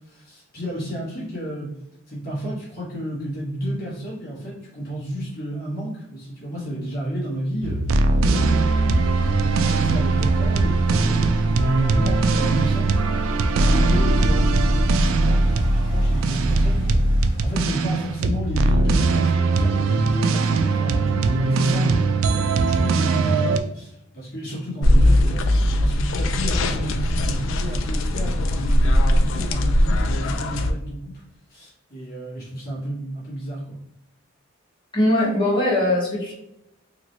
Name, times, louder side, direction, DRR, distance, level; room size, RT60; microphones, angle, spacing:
voice 1, 0.1-1.7 2.1-7.8 8.3-12.9 13.7-17.0 17.4-25.4 25.8-31.2 31.5-33.8, equal, 45° left, -8 dB, 1.4 m, -31 dB
sound 1, 7.6-23.6, right 3 dB, 80° right, 0.3 m, -20 dB
Motor vehicle (road), 8.4-22.4 22.9-23.4, equal, 25° right, 0.8 m, -28 dB
sound 2, 24.8-30.7, left 1 dB, 70° left, 0.3 m, -20 dB
voice 2, 34.9-36.3, left 1 dB, 25° left, -7 dB, 1.1 m, -20 dB
3.0 x 2.9 x 2.7 m, 0.81 s
head